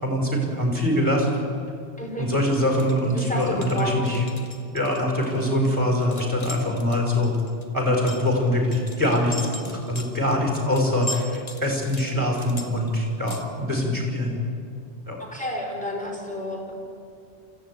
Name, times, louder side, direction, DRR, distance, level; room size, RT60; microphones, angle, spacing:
voice 1, 0.0-1.3 2.2-4.2 4.7-7.3 7.7-14.4 15.1-15.2, left 1 dB, 15° right, 0 dB, 5.0 m, -23 dB
voice 2, 2.0-2.3 3.1-4.0 15.2-16.8, left 1 dB, 5° left, -1 dB, 4.7 m, -30 dB
sound 1, 2.8-13.4, left 1 dB, 35° left, 1.7 m, -39 dB
25.5 x 15.0 x 9.4 m, 2.5 s
omnidirectional pair, 1.2 m